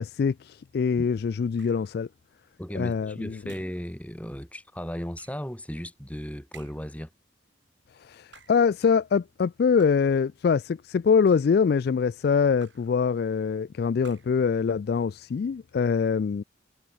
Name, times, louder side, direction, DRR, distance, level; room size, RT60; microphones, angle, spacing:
voice 1, 0.0-2.1 2.7-3.4 8.0-16.4, left 6 dB, 55° left, 0.3 m, -24 dB
sound 1, 1.6-2.0 3.5-3.9 5.1-5.5 6.5-7.0 8.2-8.7 9.8-10.2 11.0-11.6 12.6-13.0 14.0-14.5, right 7 dB, 75° right, 6.6 m, -54 dB
voice 2, 2.6-7.1, equal, 5° left, 3.2 m, -36 dB
head